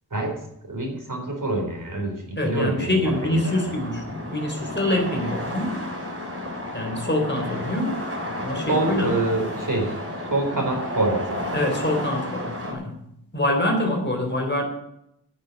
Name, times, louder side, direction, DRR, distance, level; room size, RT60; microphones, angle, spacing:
voice 1, 0.7-3.7 8.7-10.0 10.3-11.4, right 2 dB, 55° right, 1 dB, 4.0 m, -26 dB
voice 2, 2.4-5.8 6.7-8.0 8.4-9.1 11.5-12.9 13.3-14.6, left 1 dB, 30° left, 2 dB, 3.6 m, -25 dB
sound 1, 3.0-12.7, left 1 dB, 35° right, 3.4 m, -32 dB
11.0 x 7.2 x 9.3 m, 0.77 s
wide cardioid pair, 60°, 37 cm